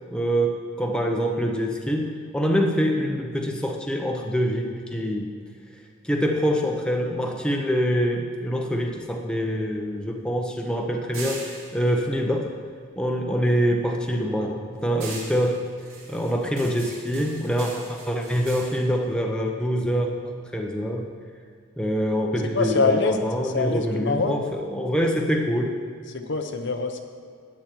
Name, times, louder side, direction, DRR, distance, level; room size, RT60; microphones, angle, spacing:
voice 1, 0.1-5.3 6.0-12.5 13.0-15.6 16.1-21.1 21.8-25.8, equal, 5° left, 1 dB, 0.8 m, -25 dB
sound 1, 8.8-13.3 13.6-20.1, right 3 dB, 65° right, 2.2 m, -43 dB
voice 2, 22.5-23.2 23.4-24.3 26.1-27.0, left 4 dB, 55° left, 6 dB, 0.8 m, -24 dB
12.5 x 9.4 x 4.5 m, 2.2 s
head